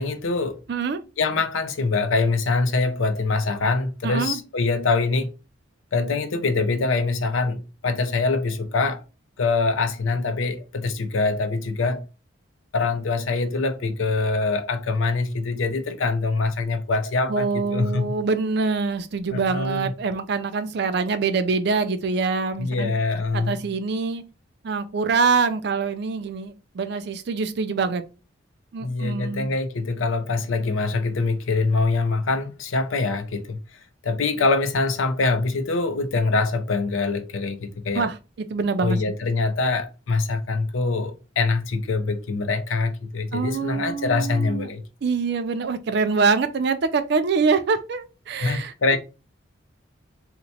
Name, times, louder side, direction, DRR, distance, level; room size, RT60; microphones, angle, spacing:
voice 1, 0.0-0.6 1.2-5.3 5.9-9.0 9.4-12.1 12.7-18.1 19.3-19.9 22.6-23.6 28.8-33.6 34.0-38.1 38.8-44.8 48.4-49.0, left 3 dB, 85° left, 0.5 m, -24 dB
voice 2, 0.7-1.0 4.0-4.4 17.3-22.9 23.3-24.2 24.6-28.0 28.7-29.5 37.9-39.1 43.3-44.7 45.0-49.0, right 4 dB, 55° right, 0.4 m, -25 dB
2.9 x 2.1 x 4.0 m
head